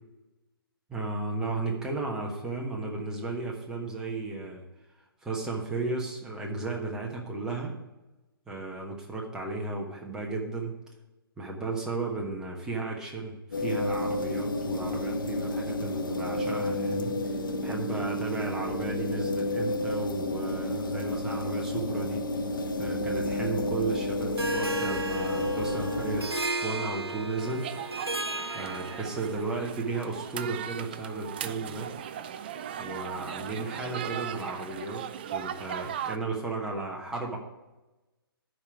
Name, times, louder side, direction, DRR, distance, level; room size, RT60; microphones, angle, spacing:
voice 1, 0.9-4.6 5.2-7.8 8.5-10.7 11.4-17.1 17.6-22.2 22.8-27.7 28.5-31.9 32.8-37.4, right 3 dB, 5° right, -1 dB, 1.2 m, -34 dB
sound 1, 13.5-26.2, left 1 dB, 55° left, 1.0 m, -31 dB
Harp, 24.4-29.4, right 2 dB, 85° right, 1.2 m, -34 dB
sound 2, 27.4-36.2, right 9 dB, 25° right, 0.3 m, -38 dB
12.0 x 5.3 x 4.7 m, 1.1 s
figure-of-eight pair, 130°, 13 cm